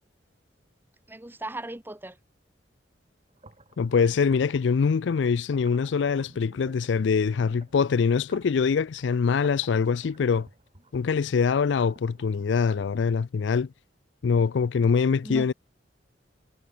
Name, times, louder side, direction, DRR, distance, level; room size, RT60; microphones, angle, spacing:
voice 1, 1.1-2.2 15.2-15.5, right 1 dB, 10° right, 1.3 m, -37 dB
sound 1, 3.3-12.9, right 2 dB, 35° right, 4.6 m, -54 dB
voice 2, 3.8-10.5 10.9-13.7 14.2-15.5, left 5 dB, 75° left, 0.4 m, -24 dB
head